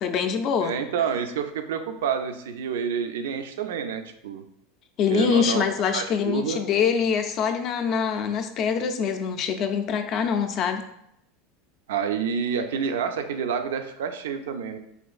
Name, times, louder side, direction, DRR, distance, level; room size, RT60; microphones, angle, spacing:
voice 1, 0.0-0.8 5.0-10.8, left 7 dB, 40° left, 6 dB, 0.3 m, -24 dB
voice 2, 0.6-4.4 5.1-6.6 11.9-14.8, right 7 dB, 90° right, 8 dB, 0.3 m, -28 dB
4.0 x 2.5 x 2.3 m, 0.77 s
supercardioid pair, 135°, 0 cm